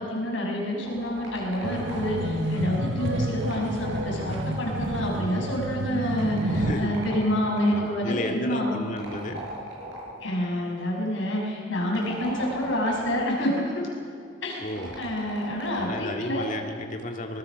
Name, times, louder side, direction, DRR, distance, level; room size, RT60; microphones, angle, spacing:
voice 1, 0.0-8.8 10.2-13.9 14.4-16.5, left 1 dB, 90° left, -1 dB, 6.3 m, -28 dB
sound 1, 0.8-2.5 3.3-5.1 6.1-7.9 9.0-10.3 11.8-13.4 14.7-16.0, right 1 dB, 85° right, 7.4 m, -40 dB
sound 2, 1.6-6.7, right 1 dB, 70° right, 1.7 m, -29 dB
voice 2, 6.5-6.9 7.7-9.4 14.6-14.9 15.8-17.4, left 1 dB, 40° left, 4 dB, 1.9 m, -33 dB
24.5 x 20.5 x 6.3 m, 2.4 s
head